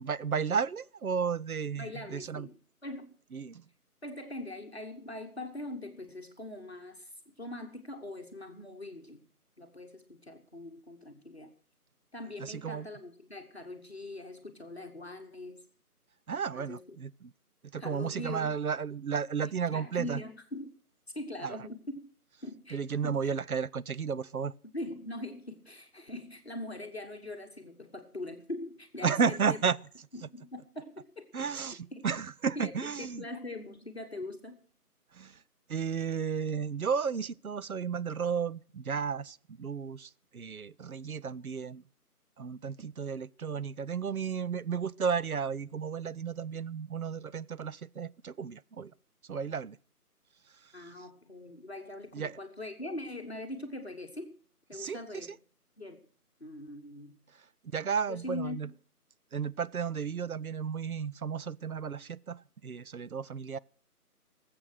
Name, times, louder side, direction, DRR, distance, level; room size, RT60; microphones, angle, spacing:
voice 1, 0.0-2.5 3.3-3.6 12.4-12.9 16.3-17.3 17.7-20.2 21.4-21.6 22.7-24.5 29.0-29.8 31.3-33.2 35.1-35.4 35.7-41.8 42.4-48.9 49.3-49.8 50.6-50.9 52.1-52.4 54.7-55.3 57.7-58.7 59.3-63.6, right 6 dB, 70° right, 0.6 m, -33 dB
voice 2, 1.7-2.6 2.8-3.2 4.0-9.2 9.6-11.5 12.1-15.6 16.5-16.8 17.8-18.5 19.4-20.7 21.1-22.1 22.4-23.3 24.7-29.6 30.1-32.0 32.5-34.6 50.7-54.3 54.7-55.3 55.8-56.0 56.4-57.2 58.1-58.6, left 1 dB, 45° left, 1.3 m, -42 dB
19.0 x 7.9 x 6.3 m
figure-of-eight pair, 165°, 46 cm